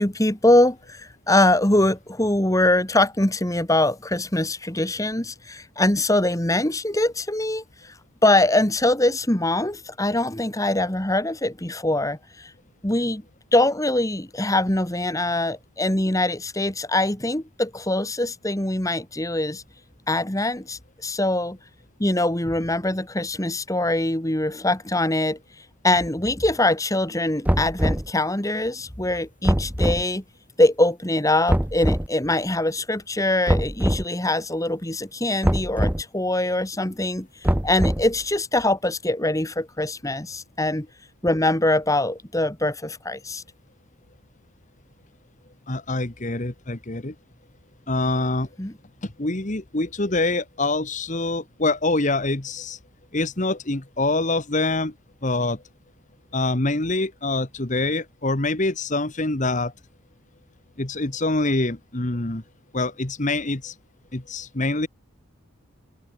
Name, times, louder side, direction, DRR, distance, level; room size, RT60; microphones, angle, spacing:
voice 1, 0.0-7.9 8.2-12.5 12.8-13.2 13.5-19.6 20.1-21.6 22.0-25.4 25.8-30.2 30.6-40.9 41.2-43.4 48.6-48.7, left 1 dB, 15° left, 1.7 m, -23 dB
sound 1, 27.4-28.1 29.4-30.0 31.5-32.1 33.5-34.0 35.4-36.0 37.4-38.2, equal, 5° right, 0.9 m, -22 dB
voice 2, 45.7-47.1 47.9-48.5 49.0-52.8 53.1-54.9 55.2-55.6 56.3-59.7 60.8-62.4 62.7-63.7 64.1-64.9, left 2 dB, 35° left, 1.5 m, -25 dB
open air
head